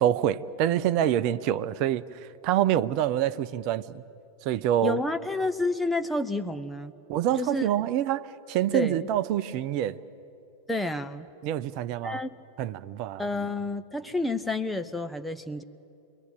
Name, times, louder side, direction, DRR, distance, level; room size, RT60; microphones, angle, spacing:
voice 1, 0.0-4.0 4.4-5.0 7.1-10.0 11.4-12.2 12.6-13.3, right 11 dB, 45° right, 14 dB, 0.8 m, -26 dB
voice 2, 4.8-6.9 7.4-7.6 8.7-9.1 10.7-11.3 12.0-12.3 13.2-15.6, left 2 dB, 5° left, 7 dB, 0.9 m, -29 dB
27.5 x 21.0 x 9.2 m, 2.7 s
figure-of-eight pair, 90°, 0 cm